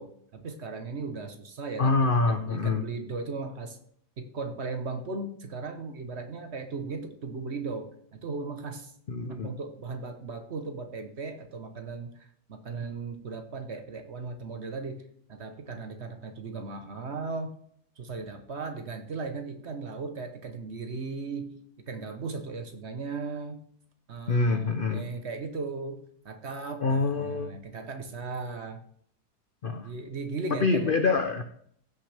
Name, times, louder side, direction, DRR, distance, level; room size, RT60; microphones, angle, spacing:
voice 1, 0.0-3.8 4.2-8.9 9.3-15.0 15.3-17.5 18.0-21.6 21.9-23.7 24.1-28.8 29.7-30.9, right 4 dB, 50° right, 7 dB, 1.1 m, -37 dB
voice 2, 1.8-2.8 9.1-9.5 24.3-25.1 26.8-27.6 29.6-29.9 30.6-31.4, left 3 dB, 65° left, 8 dB, 0.5 m, -25 dB
15.5 x 6.1 x 3.4 m, 0.64 s
omnidirectional pair, 1.8 m